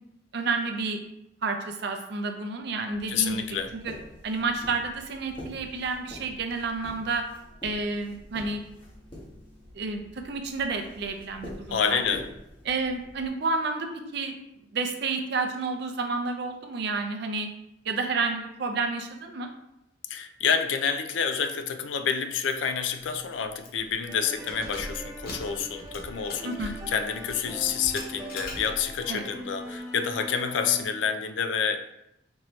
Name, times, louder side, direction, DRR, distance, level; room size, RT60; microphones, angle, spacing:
voice 1, 0.3-1.0 1.4-3.6 3.8-3.9 4.2-7.2 7.6-8.6 9.7-12.0 12.6-14.4 14.7-17.5 17.8-19.5 26.4-26.7 29.1-29.2, right 4 dB, 65° right, 5 dB, 0.5 m, -30 dB
sound 1, 2.9-13.3, left 1 dB, 30° left, 1.1 m, -46 dB
voice 2, 3.1-3.7 11.7-12.3 20.1-31.8, left 7 dB, 80° left, 8 dB, 0.4 m, -28 dB
Keys jangling, 22.5-22.7 23.0-23.1 23.6-23.9 24.3-29.1, left 1 dB, 55° left, 0.8 m, -41 dB
sound 2, 24.1-30.8, equal, 15° right, 0.7 m, -41 dB
4.5 x 2.7 x 3.0 m, 0.83 s
head